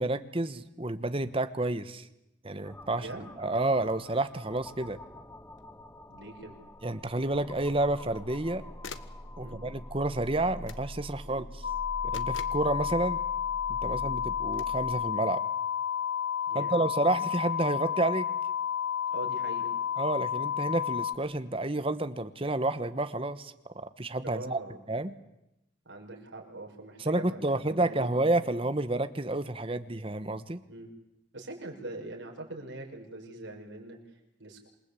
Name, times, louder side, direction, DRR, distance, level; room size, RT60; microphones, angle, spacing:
voice 1, 0.0-2.1 2.4-3.1 3.4-5.0 6.8-8.6 9.4-11.6 12.0-13.2 13.7-15.4 16.5-18.3 20.0-24.6 24.9-25.1 27.0-30.6, right 2 dB, 30° right, 12 dB, 1.1 m, -30 dB
sound 1, 2.6-14.9, left 1 dB, 10° left, 0.9 m, -44 dB
voice 2, 2.9-3.3 6.1-6.6 9.4-9.6 11.2-11.4 13.8-14.0 16.5-16.8 19.1-19.7 24.2-24.8 25.8-28.1 30.7-30.9 31.3-34.7, right 2 dB, 80° right, 1 dB, 6.1 m, -43 dB
sound 2, 5.6-5.7 8.0-8.5 8.8-9.2 10.7-10.9 12.1-12.7 14.5-14.8, left 5 dB, 85° left, 1.3 m, -46 dB
sound 3, 11.6-21.2, left 9 dB, 65° left, 1.1 m, -31 dB
27.5 x 19.5 x 8.5 m, 0.88 s
head